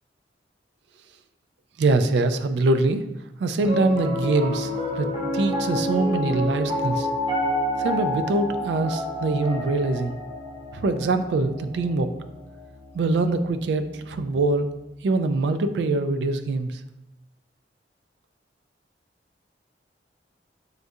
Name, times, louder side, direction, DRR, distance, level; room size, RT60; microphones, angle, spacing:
voice 1, 1.8-3.0 3.4-5.1 5.3-7.1 7.8-10.2 10.7-12.1 12.9-14.7 15.0-16.8, right 2 dB, 70° right, 9 dB, 0.3 m, -23 dB
Piano, 3.6-13.9, left 1 dB, 30° right, 0.8 m, -29 dB
6.3 x 2.3 x 2.6 m, 0.93 s
head